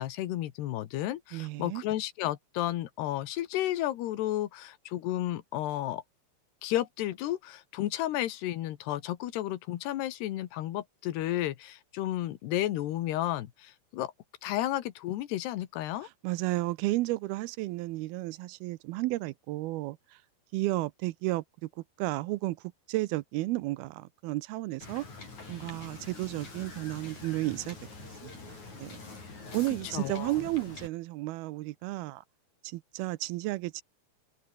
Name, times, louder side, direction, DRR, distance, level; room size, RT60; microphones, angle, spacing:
voice 1, 0.0-6.0 6.6-14.1 14.4-16.1 29.9-30.3, left 14 dB, 90° left, 3.5 m, -32 dB
voice 2, 1.3-1.8 16.0-20.0 20.5-21.7 22.0-22.6 22.9-25.1 25.5-29.0 29.5-32.2 32.6-33.8, right 18 dB, 80° right, 2.5 m, -33 dB
Wind / Boat Water vehicle, 24.8-30.9, left 3 dB, 45° left, 8.5 m, -45 dB
omnidirectional pair, 4.6 m